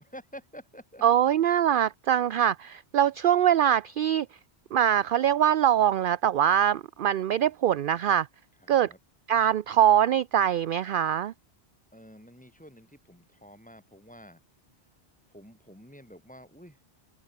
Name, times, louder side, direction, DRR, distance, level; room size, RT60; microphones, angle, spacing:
voice 1, 0.0-1.0 8.6-9.0 11.9-14.4 15.3-16.8, equal, 5° left, 5.7 m, -49 dB
voice 2, 1.0-4.3 4.7-8.3 8.7-8.9 9.3-11.3, right 10 dB, 60° right, 0.7 m, -23 dB
omnidirectional pair, 1.1 m